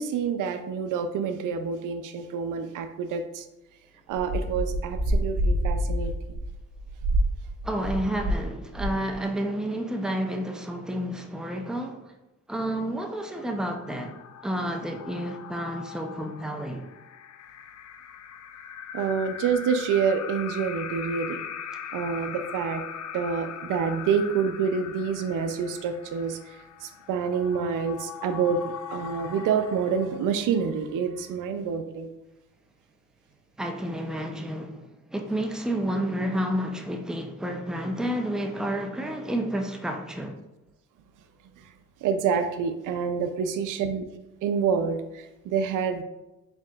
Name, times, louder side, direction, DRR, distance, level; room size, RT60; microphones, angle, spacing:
voice 1, 0.0-3.4 4.1-6.1 18.9-21.4 21.9-22.8 23.1-26.4 26.8-32.1 42.0-44.1 44.4-46.0, right 6 dB, 80° right, 0.5 m, -27 dB
sound 1, 4.1-8.5 8.7-9.1, equal, 45° right, 1.5 m, -27 dB
voice 2, 7.6-12.0 12.5-14.1 14.4-16.8 33.6-34.8 35.1-40.4, right 1 dB, ahead, 0.6 m, -30 dB
sound 2, 13.2-30.6, left 8 dB, 60° left, 0.5 m, -40 dB
4.7 x 4.2 x 2.4 m
cardioid pair, 75°, 31 cm